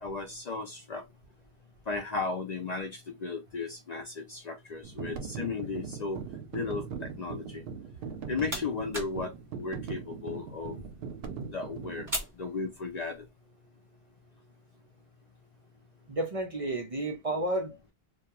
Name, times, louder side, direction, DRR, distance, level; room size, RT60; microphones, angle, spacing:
voice 1, 0.0-1.0 1.9-6.2 6.5-7.6 8.3-10.8 11.5-12.1 12.4-13.2, left 4 dB, 55° left, 0.5 m, -35 dB
sound 1, 4.8-12.2, right 6 dB, 70° right, 0.8 m, -40 dB
sound 2, 8.0-13.3, right 1 dB, 20° right, 1.3 m, -42 dB
voice 2, 16.1-17.9, right 1 dB, 45° right, 0.5 m, -32 dB
2.3 x 2.2 x 2.9 m
omnidirectional pair, 1.0 m